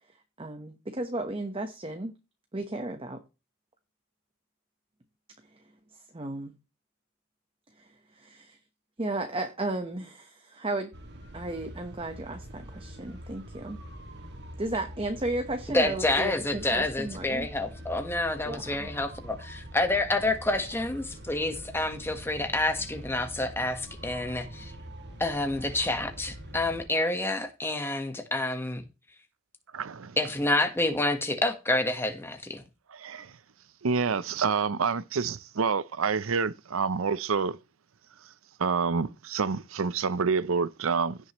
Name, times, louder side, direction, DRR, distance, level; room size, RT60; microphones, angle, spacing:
voice 1, 0.4-2.1 2.5-3.2 5.9-6.5 7.8-8.6 9.0-10.9 11.3-13.8 14.6-17.5 18.5-18.9, right 2 dB, 25° right, 1.1 m, -34 dB
sound 1, 10.9-26.9, equal, 55° right, 2.0 m, -44 dB
voice 2, 15.7-24.7 25.2-28.8 30.2-32.6, left 2 dB, 10° left, 1.3 m, -28 dB
voice 3, 29.7-30.2 32.9-33.3 33.8-37.6 38.6-41.2, right 5 dB, 75° right, 0.6 m, -28 dB
16.5 x 6.3 x 3.1 m
head